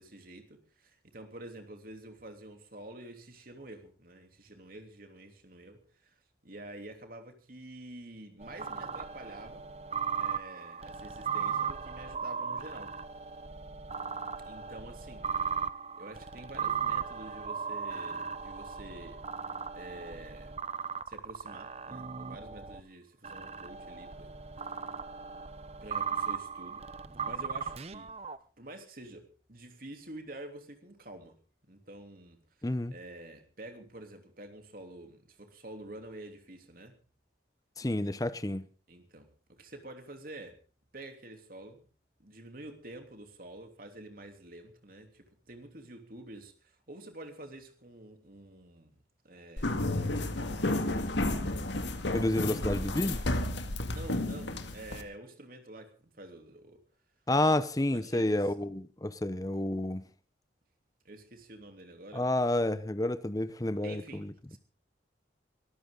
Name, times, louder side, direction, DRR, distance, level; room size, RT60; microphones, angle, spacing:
voice 1, 0.0-6.1 6.4-9.7 10.1-12.9 14.5-15.6 16.0-19.2 19.7-20.6 21.1-24.8 25.8-26.9 27.2-28.2 28.6-31.3 31.7-32.4 32.9-37.0 38.9-40.6 40.9-41.9 42.2-51.2 53.9-56.8 57.8-58.5 61.0-62.3 63.8-64.6, right 1 dB, 50° right, 3.2 m, -48 dB
sound 1, 8.4-22.8 23.2-28.4, right 6 dB, 35° right, 0.7 m, -37 dB
voice 2, 32.6-32.9 37.8-38.7 52.1-53.2 57.3-60.0 62.1-64.0, left 1 dB, 20° left, 0.7 m, -29 dB
sound 2, 49.6-55.0, left 2 dB, 80° left, 2.0 m, -32 dB
23.5 x 13.5 x 3.9 m
head